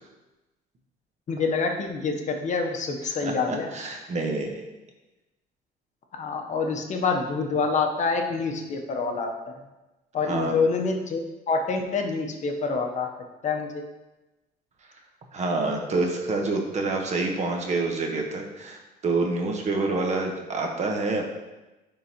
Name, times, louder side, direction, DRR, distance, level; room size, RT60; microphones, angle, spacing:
voice 1, 1.3-3.7 6.1-9.3 10.1-13.1 13.4-13.8, left 4 dB, 45° left, 4 dB, 0.8 m, -26 dB
voice 2, 3.0-4.5 10.2-10.6 15.3-21.2, right 3 dB, 40° right, 2 dB, 1.0 m, -27 dB
9.5 x 3.8 x 2.8 m, 1.1 s
cardioid pair, 110°, 17 cm